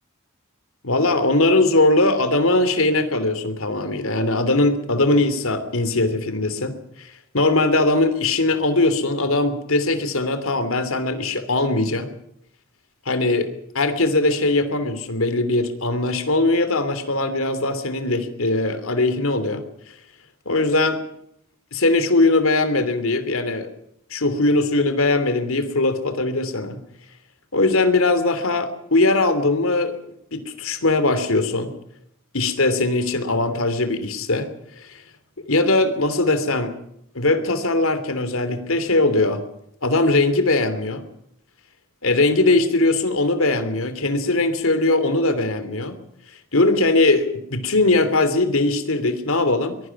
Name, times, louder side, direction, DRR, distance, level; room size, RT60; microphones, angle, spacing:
voice 1, 0.8-12.1 13.1-13.5 13.7-19.6 20.4-21.0 21.7-23.7 24.1-26.8 27.5-30.0 30.3-31.7 32.3-34.5 34.8-35.0 35.4-36.7 37.1-39.4 39.8-41.0 42.0-46.0 46.5-49.8, left 2 dB, 75° left, 11 dB, 3.0 m, -20 dB
23.5 x 22.0 x 6.0 m, 0.73 s
head